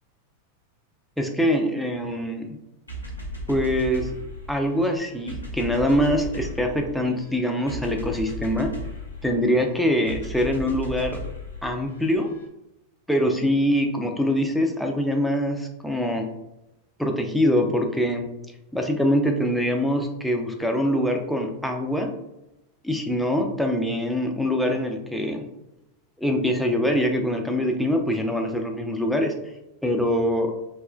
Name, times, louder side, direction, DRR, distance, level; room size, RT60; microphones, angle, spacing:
voice 1, 1.2-2.6 3.5-4.1 4.5-8.7 9.2-11.2 11.6-12.3 13.1-16.3 17.0-18.3 18.7-22.1 22.8-25.4 26.2-29.3 29.8-30.5, equal, ahead, 2 dB, 0.3 m, -24 dB
sound 1, 2.9-12.4, equal, 80° left, 0.6 m, -36 dB
2.9 x 2.1 x 2.2 m, 0.90 s
figure-of-eight pair, 90°, 0 cm